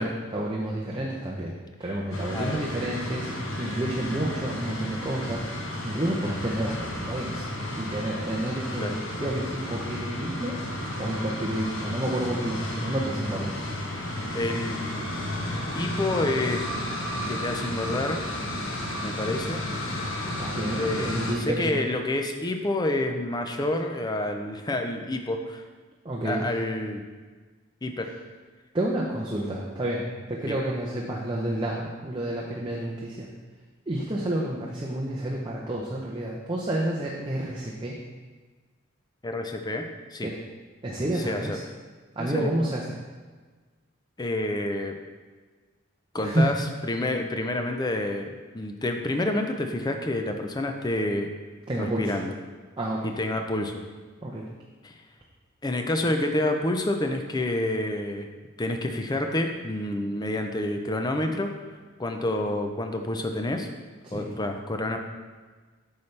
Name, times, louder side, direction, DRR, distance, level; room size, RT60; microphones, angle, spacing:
voice 1, 0.0-1.5 1.8-5.5 5.8-7.4 7.7-10.6 11.0-13.5 20.4-21.8 26.0-26.5 28.7-33.3 33.9-38.0 40.2-40.4 40.8-41.6 42.2-42.9 46.2-46.5 51.7-52.2 52.8-53.1 54.2-54.5 64.0-64.3, right 1 dB, 25° right, -4 dB, 0.6 m, -30 dB
sound 1, 2.1-21.4, left 1 dB, 65° left, 1.2 m, -32 dB
voice 2, 2.3-2.6 8.8-9.0 14.3-14.8 15.8-16.7 17.3-18.2 19.0-19.6 20.7-25.6 26.2-27.0 27.8-28.1 30.5-30.6 39.2-40.3 41.3-41.6 42.2-42.5 44.2-45.0 46.1-46.6 46.9-51.3 51.7-52.3 53.0-53.8 54.8-54.9 55.6-58.3 58.6-61.5 62.0-63.7 64.1-65.0, left 1 dB, 20° left, 4 dB, 0.5 m, -28 dB
8.4 x 5.6 x 3.3 m, 1.4 s
head